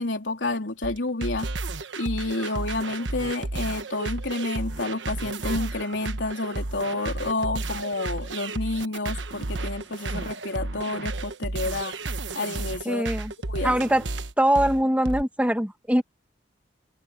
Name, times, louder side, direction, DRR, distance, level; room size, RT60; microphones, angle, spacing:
voice 1, 0.0-1.5 2.0-12.0 12.3-13.1 13.4-13.8, left 2 dB, 80° left, 3.4 m, -29 dB
sound 1, 0.8-15.2, right 2 dB, 85° right, 1.2 m, -32 dB
voice 2, 12.9-13.3 13.6-14.1 14.4-16.0, right 1 dB, 10° right, 1.7 m, -22 dB
head